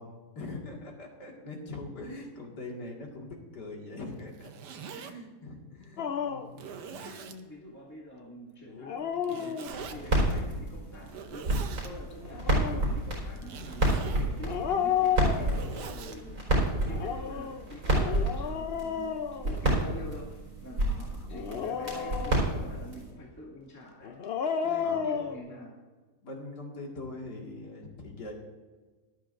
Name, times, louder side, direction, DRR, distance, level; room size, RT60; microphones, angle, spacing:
voice 1, 0.0-4.5 4.9-6.4 20.8-21.3 24.8-25.2 26.2-28.3, left 2 dB, 85° left, -1 dB, 2.5 m, -42 dB
Zipper (clothing), 4.2-5.1 5.8-5.9 6.5-7.4 9.2-10.0 11.0-11.9 13.4-14.3 15.1-16.2, right 6 dB, 90° right, 1.4 m, -43 dB
Dog, 6.0-6.6 8.7-10.1 12.2-12.9 14.4-15.9 16.8-20.0 21.3-22.7 24.0-25.4, left 8 dB, 55° left, 0.7 m, -32 dB
voice 2, 6.9-13.9 14.2-16.4 16.6-20.3 20.6-24.1 24.6-25.7, equal, 10° left, -4 dB, 2.2 m, -46 dB
sound 1, 9.7-23.1, right 1 dB, 60° right, 5.1 m, -30 dB
18.0 x 13.0 x 2.6 m, 1.3 s
omnidirectional pair, 1.7 m